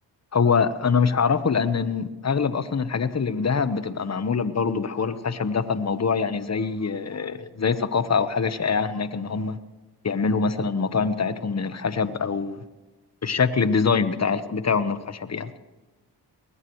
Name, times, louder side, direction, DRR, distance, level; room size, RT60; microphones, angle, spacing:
voice 1, 0.3-9.6 10.0-12.6 13.2-15.5, left 5 dB, 35° left, 12 dB, 1.1 m, -24 dB
23.0 x 19.0 x 3.2 m, 1.2 s
cardioid pair, 50°, 44 cm